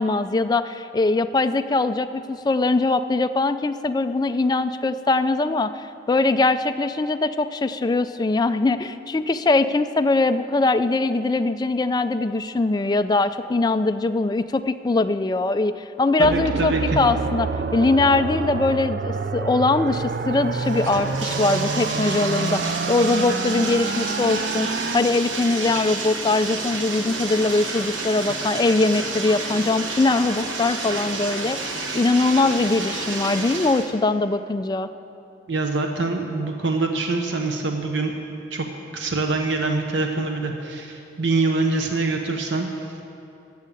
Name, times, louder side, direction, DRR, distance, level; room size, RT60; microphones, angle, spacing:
voice 1, 0.0-15.7 16.0-34.9, left 3 dB, 20° left, 10 dB, 0.3 m, -22 dB
sound 1, 16.2-25.0, right 4 dB, 50° right, 0.4 m, -28 dB
voice 2, 16.2-17.0 28.2-28.3 35.5-38.1 38.5-38.7 38.9-42.9, right 3 dB, 70° right, 3 dB, 0.8 m, -25 dB
Bathtub (filling or washing), 19.9-33.9, right 3 dB, 85° right, 1.2 m, -30 dB
14.0 x 6.5 x 8.4 m, 2.8 s
head